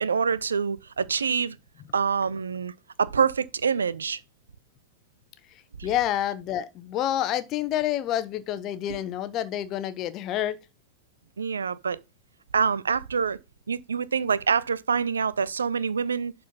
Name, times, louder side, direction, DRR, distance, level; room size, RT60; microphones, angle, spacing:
voice 1, 0.0-1.6 1.9-2.7 3.0-4.2 5.8-5.9 11.4-12.0 12.5-13.4 13.7-16.3, right 6 dB, 70° right, 0.5 m, -26 dB
voice 2, 5.8-10.6, left 11 dB, 35° left, 1.0 m, -28 dB
11.0 x 4.2 x 5.3 m
figure-of-eight pair, 90°, 0 cm